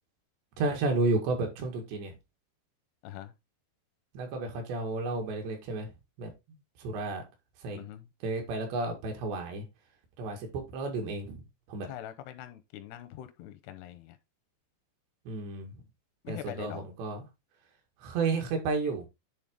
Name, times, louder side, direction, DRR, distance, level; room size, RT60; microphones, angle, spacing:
voice 1, 0.6-2.1 4.1-5.9 6.2-7.2 7.6-7.8 8.2-9.7 10.2-11.4 11.7-11.9 15.3-15.8 16.3-17.3 18.0-19.1, right 3 dB, 80° right, 4.0 m, -32 dB
voice 2, 3.0-3.3 7.7-8.1 11.9-14.2 16.2-16.8, left 12 dB, 85° left, 2.6 m, -43 dB
10.0 x 3.8 x 3.6 m
omnidirectional pair, 4.9 m